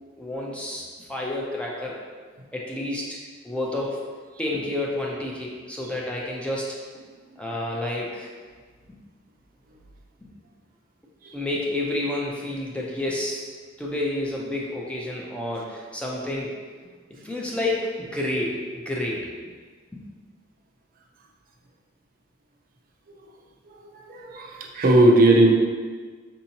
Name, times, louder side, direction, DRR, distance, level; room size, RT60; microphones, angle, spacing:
voice 1, 0.2-2.0 2.5-3.2 3.4-4.0 4.4-6.8 7.4-8.3 10.2-10.3 11.3-13.4 13.8-16.5 17.1-19.3 19.9-20.0, left 1 dB, 5° left, -3 dB, 0.4 m, -29 dB
voice 2, 23.7-25.5, right 1 dB, 50° right, 0 dB, 0.5 m, -19 dB
5.2 x 2.7 x 2.8 m, 1.5 s
head